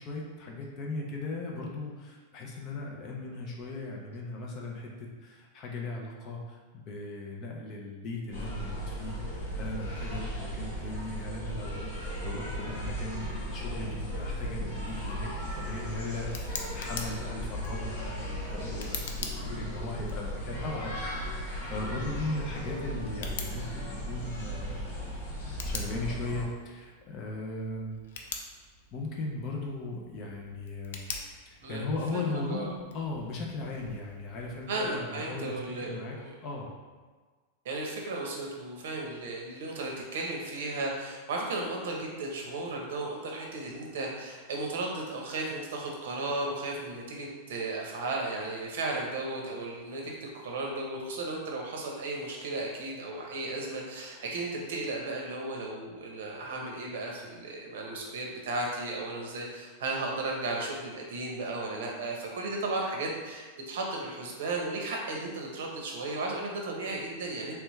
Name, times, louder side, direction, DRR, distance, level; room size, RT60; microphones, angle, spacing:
voice 1, 0.0-21.2 21.7-25.1 25.4-28.1 28.9-31.1 31.5-36.2 36.4-36.7, left 2 dB, 25° left, -1 dB, 0.5 m, -38 dB
sound 1, 8.3-26.4, equal, 65° left, 1.4 m, -36 dB
Tick, 15.3-35.0, left 5 dB, 85° left, 0.5 m, -46 dB
voice 2, 31.6-32.7 34.7-36.4 37.6-67.6, right 2 dB, 70° right, -1 dB, 0.8 m, -35 dB
3.4 x 3.3 x 3.1 m, 1.4 s
supercardioid pair, 180°, 0 cm